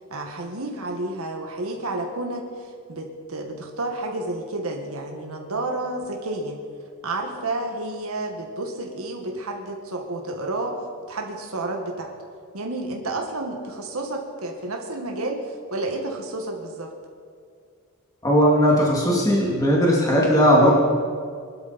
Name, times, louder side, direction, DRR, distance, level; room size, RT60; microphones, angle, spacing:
voice 1, 0.1-6.6 7.0-10.8 11.1-12.1 12.5-16.9, right 2 dB, 85° right, 2 dB, 1.9 m, -30 dB
voice 2, 18.2-20.8, equal, 15° left, -4 dB, 2.7 m, -18 dB
22.5 x 12.0 x 4.4 m, 2.1 s
head